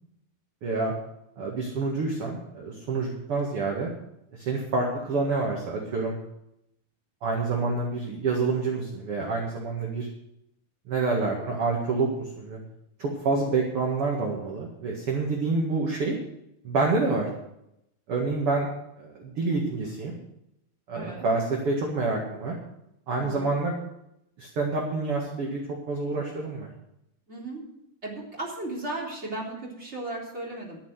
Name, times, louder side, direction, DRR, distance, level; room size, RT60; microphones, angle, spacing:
voice 1, 0.6-0.9 1.4-3.9 4.3-6.2 7.2-10.1 10.9-12.6 13.0-16.2 16.6-17.3 18.1-18.7 19.0-20.1 20.9-22.6 23.1-23.7 24.4-25.6 25.9-26.7, right 3 dB, 45° right, -1 dB, 2.3 m, -27 dB
voice 2, 20.9-21.2 23.2-23.5 27.3-27.6 28.0-30.8, right 2 dB, 15° right, -3 dB, 3.6 m, -35 dB
12.5 x 7.9 x 8.2 m, 0.81 s
omnidirectional pair, 4.4 m